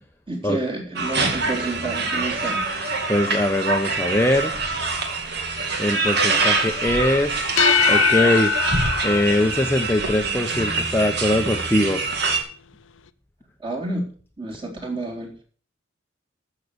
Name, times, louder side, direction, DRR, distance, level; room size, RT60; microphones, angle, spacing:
voice 1, 0.3-2.7 13.6-14.1 14.4-15.4, right 2 dB, 25° right, -2 dB, 3.9 m, -29 dB
sound 1, 1.0-12.4, right 3 dB, 55° right, 2.3 m, -24 dB
voice 2, 3.1-4.6 5.8-7.6 7.9-8.5 9.0-12.0, left 1 dB, 10° left, 3 dB, 0.9 m, -22 dB
sound 2, 7.4-10.2, left 8 dB, 80° left, 0.6 m, -22 dB
14.5 x 6.7 x 6.9 m, 0.42 s
head